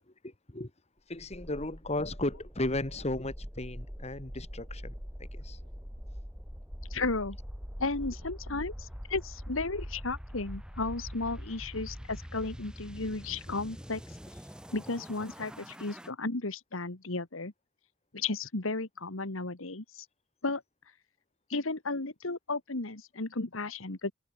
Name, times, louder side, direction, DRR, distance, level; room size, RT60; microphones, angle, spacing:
voice 1, 0.2-0.7 1.1-4.9 5.3-5.6, left 2 dB, 30° left, 1.9 m, -35 dB
sound 1, 1.2-16.1, equal, 5° right, 4.6 m, -43 dB
voice 2, 6.9-7.4 7.8-14.0 14.7-17.5 18.1-20.1 20.4-20.6 21.5-24.1, left 3 dB, 80° left, 1.8 m, -34 dB
head